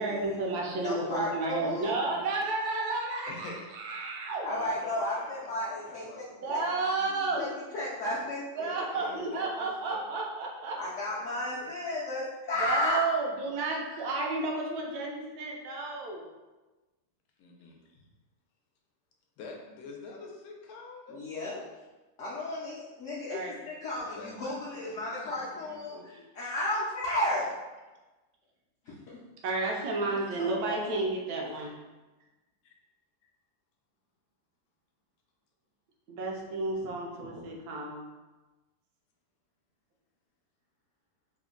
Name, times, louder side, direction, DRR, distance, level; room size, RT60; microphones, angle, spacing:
voice 1, 0.0-4.5 6.4-7.5 8.5-10.8 12.6-16.2 23.3-23.6 29.4-31.7 36.1-38.0, right 3 dB, 80° right, -1 dB, 1.1 m, -32 dB
voice 2, 0.7-1.9 4.4-6.1 6.5-6.6 7.4-8.7 10.8-13.0 21.1-21.6 22.2-26.0 26.3-27.5 29.1-29.2 30.1-30.8, left 1 dB, 60° left, -7 dB, 0.9 m, -33 dB
voice 3, 1.4-2.2 3.2-3.6 4.5-7.3 8.9-10.0 11.0-11.7 17.4-18.1 19.4-21.7 23.9-26.2 32.6-32.7 33.2-33.3, left 3 dB, 80° left, 0 dB, 1.1 m, -47 dB
3.3 x 2.2 x 3.7 m, 1.2 s
omnidirectional pair, 1.6 m